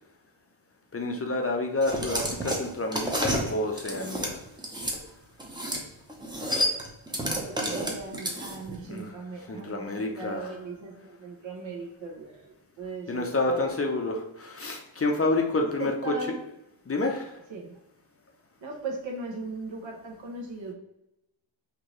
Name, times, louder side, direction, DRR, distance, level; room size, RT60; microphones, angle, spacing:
voice 1, 0.9-4.4 8.8-10.6 13.1-16.1 16.9-17.3, left 2 dB, 30° left, 2 dB, 0.6 m, -29 dB
sound 1, 1.8-5.0 5.4-5.8 6.1-8.7, equal, 10° right, 0.7 m, -30 dB
voice 2, 7.3-9.8 10.1-13.7 15.8-16.4 17.5-17.8 18.6-20.7, right 3 dB, 70° right, 0 dB, 1.0 m, -38 dB
4.5 x 2.6 x 3.1 m, 0.87 s
wide cardioid pair, 90°, 47 cm